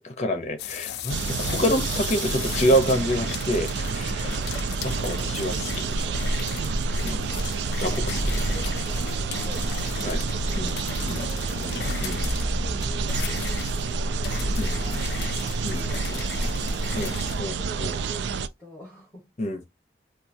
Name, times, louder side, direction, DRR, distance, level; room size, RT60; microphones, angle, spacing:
voice 1, 0.0-4.5 4.8-6.5 7.0-7.3 7.8-8.4 10.0-10.2 10.6-10.8 11.0-11.3 11.5-12.3 14.6-15.1 15.6-16.2 16.9-18.0 19.4-19.6, equal, 40° left, 0.7 m, -28 dB
sound 1, 0.6-17.4, left 8 dB, 65° left, 0.3 m, -36 dB
sound 2, 1.1-18.5, right 5 dB, 85° right, 0.3 m, -30 dB
sound 3, 3.9-18.4, equal, 5° right, 1.3 m, -32 dB
voice 2, 7.6-16.9 17.6-19.3, right 1 dB, 10° left, 1.5 m, -46 dB
4.4 x 2.3 x 2.6 m
head